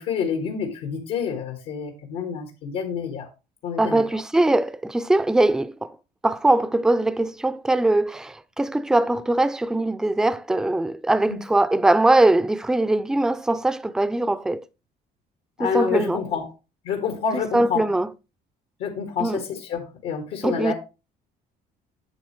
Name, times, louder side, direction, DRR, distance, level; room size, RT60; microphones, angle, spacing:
voice 1, 0.0-3.3 3.6-4.0 11.3-11.4 15.6-16.4 16.8-17.8 18.8-20.7, left 6 dB, 85° left, 1.7 m, -28 dB
voice 2, 3.8-5.9 6.2-14.6 15.6-16.2 17.5-18.1 19.2-19.4 20.4-20.7, right 2 dB, 5° right, 0.4 m, -21 dB
8.8 x 6.7 x 3.1 m
cardioid pair, 110°, 17 cm